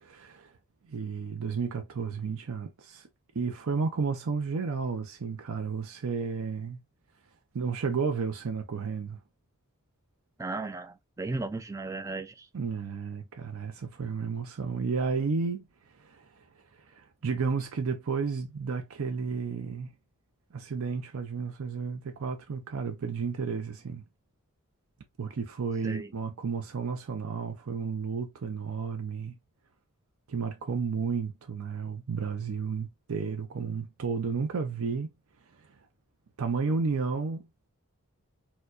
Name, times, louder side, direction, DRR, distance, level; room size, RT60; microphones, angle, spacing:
voice 1, 0.0-0.5 0.9-3.1 3.3-6.8 7.5-9.2 12.5-15.6 16.0-16.4 16.9-19.9 20.5-24.0 25.2-29.4 30.3-35.1 36.4-37.5, right 5 dB, 70° right, 0.5 m, -32 dB
voice 2, 10.4-12.5 25.8-26.1, right 3 dB, 15° right, 0.3 m, -35 dB
4.4 x 2.2 x 2.4 m
head